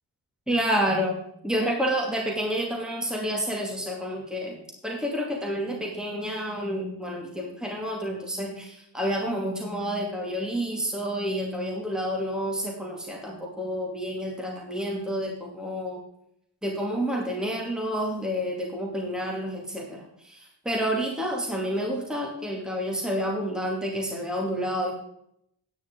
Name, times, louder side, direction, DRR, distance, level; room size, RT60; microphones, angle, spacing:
voice 1, 0.5-1.2 1.4-4.6 4.8-16.0 16.6-24.9, equal, ahead, -1 dB, 2.4 m, -29 dB
10.5 x 9.6 x 3.8 m, 0.74 s
cardioid pair, 80°, 42 cm